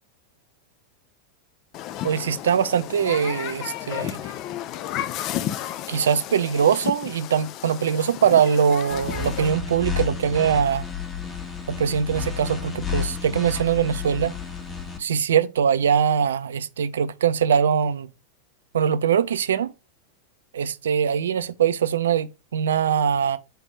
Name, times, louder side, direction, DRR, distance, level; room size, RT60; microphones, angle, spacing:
Human group actions, 1.7-9.5, left 12 dB, 40° left, 0.4 m, -33 dB
voice 1, 2.0-4.2 5.9-10.8 11.7-14.3 15.0-18.1 18.7-19.7 20.5-23.4, right 8 dB, 65° right, 0.4 m, -22 dB
sound 1, 8.9-15.0, left 7 dB, 15° left, 1.3 m, -31 dB
4.9 x 3.4 x 3.2 m
figure-of-eight pair, 90°, 0 cm